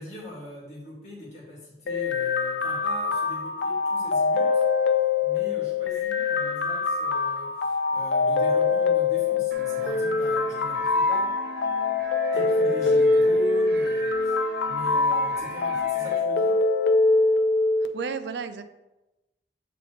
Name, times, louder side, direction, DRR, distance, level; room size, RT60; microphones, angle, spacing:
voice 1, 0.0-4.6 5.2-11.4 12.3-14.4 14.7-16.6, left 1 dB, 40° left, -6 dB, 2.1 m, -41 dB
sound 1, 1.9-17.9, left 3 dB, 90° left, 0.5 m, -24 dB
sound 2, 9.5-16.2, right 3 dB, 60° right, 0.8 m, -41 dB
voice 2, 17.8-18.6, right 5 dB, 75° right, 10 dB, 0.4 m, -33 dB
7.7 x 3.8 x 3.3 m, 0.99 s
head